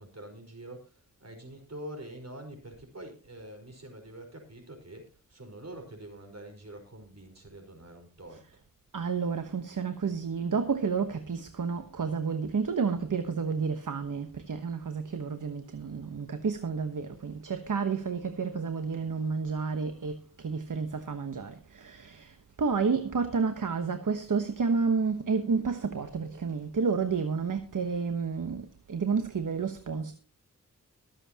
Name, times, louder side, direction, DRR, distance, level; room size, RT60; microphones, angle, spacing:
voice 1, 0.0-8.6, right 1 dB, 50° right, 4.8 m, -46 dB
voice 2, 8.9-22.3 22.6-30.1, right 5 dB, 70° right, 1.2 m, -30 dB
23.0 x 8.0 x 2.9 m
wide cardioid pair, 65°, 32 cm